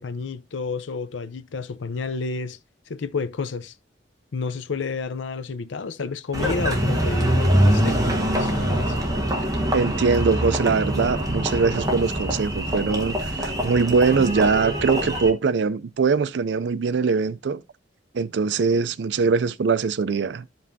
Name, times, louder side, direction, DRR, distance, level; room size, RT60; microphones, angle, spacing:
voice 1, 0.0-2.6 2.9-3.7 4.3-9.0, left 4 dB, 90° left, 0.6 m, -31 dB
Engine, 6.3-15.3, equal, 20° right, 1.2 m, -24 dB
voice 2, 9.7-17.6 18.1-20.5, right 5 dB, 70° right, 0.4 m, -22 dB
12.5 x 5.3 x 2.7 m
head